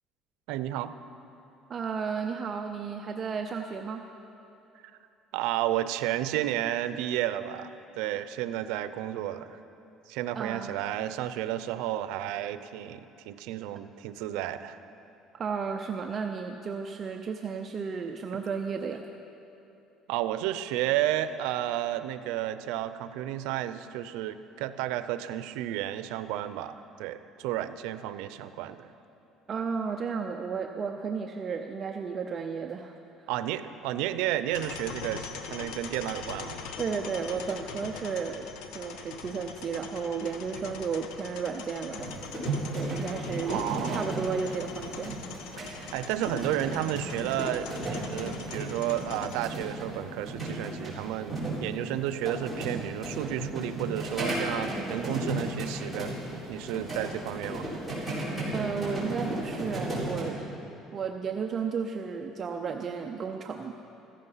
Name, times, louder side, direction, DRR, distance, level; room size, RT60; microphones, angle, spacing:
voice 1, 0.5-0.9 5.3-9.6 10.1-14.8 20.1-26.7 27.0-28.9 33.3-36.6 43.5-44.1 45.6-56.1 56.5-57.7, right 12 dB, 90° right, 12 dB, 0.6 m, -32 dB
voice 2, 1.7-4.1 10.3-10.8 15.3-19.1 29.5-33.0 36.8-38.5 38.7-42.1 42.7-45.2 58.5-60.4 60.9-63.8, right 5 dB, 30° right, 3 dB, 0.6 m, -33 dB
sound 1, 34.5-49.4, left 6 dB, 90° left, 1.1 m, -42 dB
sound 2, 42.0-60.2, right 1 dB, 5° left, 4.1 m, -35 dB
15.5 x 14.0 x 5.7 m, 2.9 s
cardioid pair, 160°, 0 cm